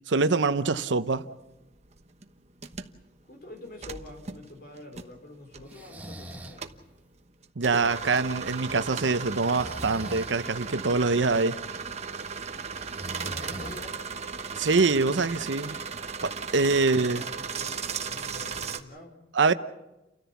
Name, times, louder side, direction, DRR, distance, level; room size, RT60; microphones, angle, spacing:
voice 1, 0.1-1.3 7.6-11.6 14.5-15.8 16.2-17.2 19.3-19.5, right 4 dB, 90° right, 0.8 m, -24 dB
sound 1, 1.1-18.8, right 5 dB, 40° right, 1.1 m, -37 dB
voice 2, 3.2-6.7 13.2-14.0 16.8-19.2, left 2 dB, 55° left, 4.2 m, -46 dB
Breathing, 5.7-6.6 9.3-10.3 12.7-14.1, equal, 10° right, 1.3 m, -41 dB
30.0 x 14.0 x 7.1 m
head